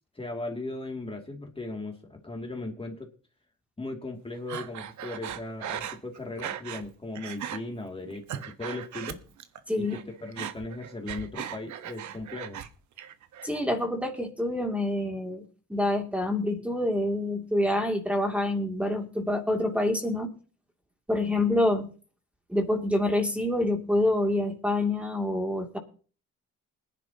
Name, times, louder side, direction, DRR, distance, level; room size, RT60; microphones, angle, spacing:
voice 1, 0.1-3.1 3.8-9.2 9.8-12.6, left 2 dB, 20° left, 2 dB, 2.6 m, -37 dB
Breathing, 4.5-6.9 7.2-7.6 8.1-9.6 9.9-12.7 13.0-13.6, right 9 dB, 70° right, 1.3 m, -38 dB
voice 2, 13.4-15.4 15.7-20.3 21.1-21.9 22.5-25.8, left 1 dB, 5° right, 3 dB, 2.8 m, -27 dB
20.5 x 10.5 x 3.0 m, 0.38 s
cardioid pair, 90°, 30 cm